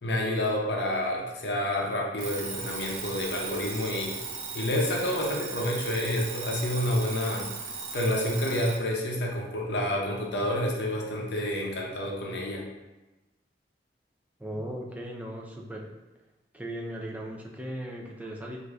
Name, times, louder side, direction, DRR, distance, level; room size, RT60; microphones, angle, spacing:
voice 1, 0.0-4.2 4.5-7.5 7.9-12.6, left 1 dB, 65° left, -1 dB, 0.6 m, -29 dB
Alarm, 2.2-8.9, right 4 dB, 65° right, 0.5 m, -37 dB
voice 2, 14.4-15.9 16.5-18.6, right 1 dB, 10° right, -1 dB, 0.4 m, -37 dB
4.6 x 2.6 x 2.3 m, 1.1 s
head